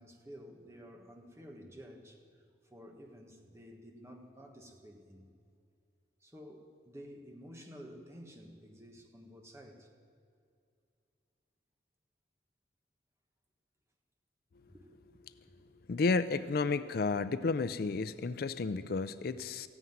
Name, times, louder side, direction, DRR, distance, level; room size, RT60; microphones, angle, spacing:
voice 1, 0.0-2.2 2.6-5.3 6.2-9.9 14.7-15.1 15.4-15.6, equal, 15° right, 2 dB, 1.5 m, -52 dB
voice 2, 15.9-19.7, left 4 dB, 60° left, 13 dB, 0.4 m, -32 dB
15.0 x 9.6 x 9.3 m, 2.4 s
head